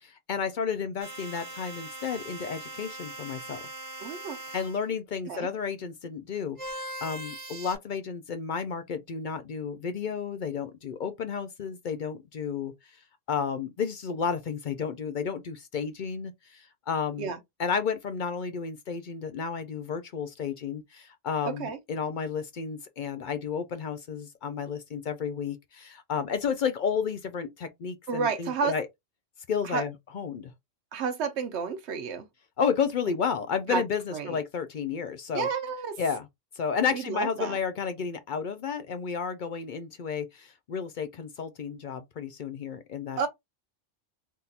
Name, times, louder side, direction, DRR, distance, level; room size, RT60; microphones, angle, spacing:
voice 1, 0.0-3.6 4.5-12.7 13.3-17.3 17.6-28.9 29.5-30.5 32.6-35.5 36.0-36.3 36.6-43.2, left 6 dB, 55° left, 0.5 m, -32 dB
sound 1, 1.0-4.8 6.6-7.8, right 1 dB, 30° right, 0.8 m, -40 dB
voice 2, 4.0-4.4 5.3-5.5 17.2-17.4 21.6-21.8 28.1-28.7 29.6-29.8 30.9-32.2 33.7-33.8 34.1-34.4 35.3-36.0 36.9-37.6 43.2-43.3, right 6 dB, 65° right, 1.0 m, -31 dB
3.6 x 2.7 x 2.4 m
omnidirectional pair, 1.3 m